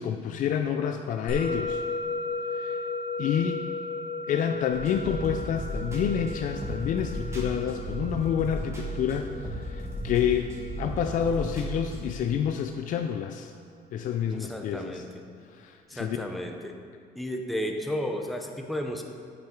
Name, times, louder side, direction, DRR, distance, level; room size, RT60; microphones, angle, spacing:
voice 1, 0.0-1.8 2.5-2.8 3.2-3.7 4.3-9.3 9.6-13.5 13.9-15.0 15.5-16.2, left 8 dB, 50° left, 6 dB, 0.4 m, -28 dB
Musical instrument, 1.3-11.9, left 3 dB, 85° left, 1.4 m, -36 dB
sound 1, 4.7-12.1, right 1 dB, 15° right, 1.4 m, -35 dB
voice 2, 14.3-15.2 15.9-16.7 17.2-19.0, equal, ahead, 3 dB, 0.6 m, -33 dB
8.8 x 5.8 x 3.7 m, 2.2 s
cardioid pair, 110°, 17 cm